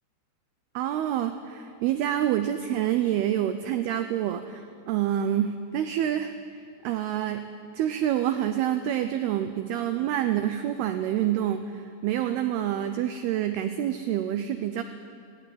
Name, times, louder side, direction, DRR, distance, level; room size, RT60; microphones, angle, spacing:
voice 1, 0.8-6.3 6.8-7.5 7.7-14.8, right 11 dB, 85° right, 8 dB, 2.2 m, -27 dB
19.0 x 17.5 x 9.2 m, 2.3 s
omnidirectional pair, 5.5 m